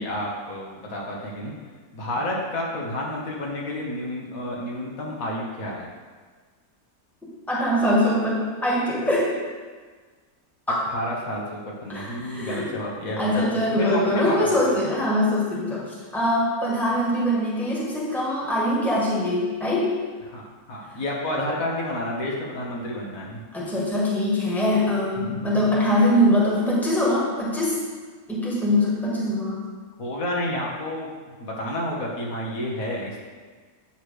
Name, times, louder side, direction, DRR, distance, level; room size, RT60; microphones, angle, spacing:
voice 1, 0.0-1.5 1.9-5.9 10.9-13.4 13.8-14.9 20.3-23.4 30.0-31.1 31.4-33.2, left 1 dB, 70° left, -3 dB, 1.6 m, -30 dB
voice 2, 7.5-9.3 10.7-10.8 11.9-12.7 13.2-19.9 23.5-27.8 28.3-29.6, left 1 dB, ahead, -5 dB, 1.5 m, -23 dB
8.8 x 3.2 x 6.4 m, 1.5 s
omnidirectional pair, 1.6 m